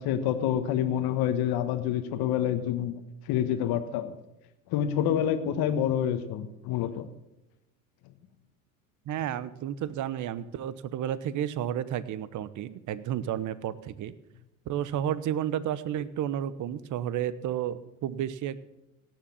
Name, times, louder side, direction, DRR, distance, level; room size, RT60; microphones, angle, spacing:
voice 1, 0.0-2.9 3.2-4.2 4.7-7.1, left 10 dB, 50° left, 9 dB, 1.4 m, -27 dB
voice 2, 9.1-14.1 14.7-18.6, right 10 dB, 40° right, 17 dB, 1.0 m, -32 dB
17.0 x 7.4 x 7.1 m, 0.95 s
hypercardioid pair, 80°, 46 cm